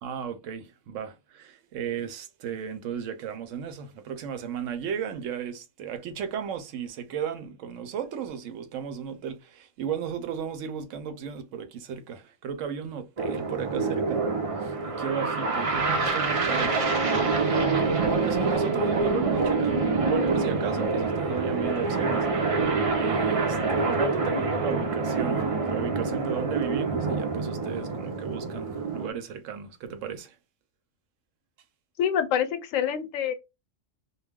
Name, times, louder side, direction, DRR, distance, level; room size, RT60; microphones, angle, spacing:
voice 1, 0.0-30.4, right 7 dB, 80° right, 0.9 m, -35 dB
sound 1, 13.2-29.1, right 3 dB, 45° right, 0.4 m, -26 dB
voice 2, 32.0-33.3, left 9 dB, 85° left, 0.9 m, -26 dB
2.3 x 2.2 x 3.4 m
omnidirectional pair, 1.3 m